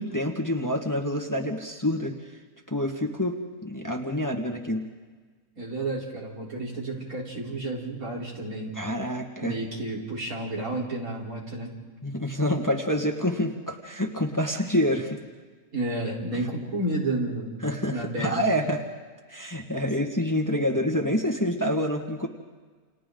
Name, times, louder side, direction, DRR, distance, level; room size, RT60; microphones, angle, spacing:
voice 1, 0.0-2.3 2.7-4.8 8.7-9.6 12.0-15.2 17.6-18.8 19.3-22.3, equal, 15° left, 1 dB, 1.6 m, -27 dB
voice 2, 5.6-8.8 9.4-11.8 15.7-17.6 17.9-18.6, right 2 dB, 80° right, -3 dB, 4.4 m, -31 dB
29.5 x 28.5 x 3.9 m, 1.4 s
omnidirectional pair, 1.5 m